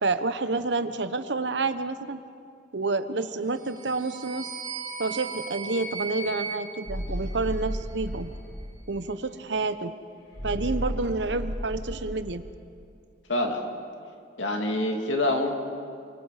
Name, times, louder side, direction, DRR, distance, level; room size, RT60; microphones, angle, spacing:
voice 1, 0.0-2.2 2.7-4.5 5.0-8.3 8.9-9.9 10.4-12.4, right 3 dB, 70° right, 11 dB, 1.0 m, -29 dB
sound 1, 3.6-7.9, right 3 dB, 45° right, 1.9 m, -37 dB
sound 2, 6.9-8.7 10.3-12.3, equal, 65° left, 5.2 m, -33 dB
voice 2, 13.3-13.6 14.4-15.6, left 1 dB, 80° left, 2 dB, 2.7 m, -26 dB
29.5 x 23.5 x 5.0 m, 2.4 s
head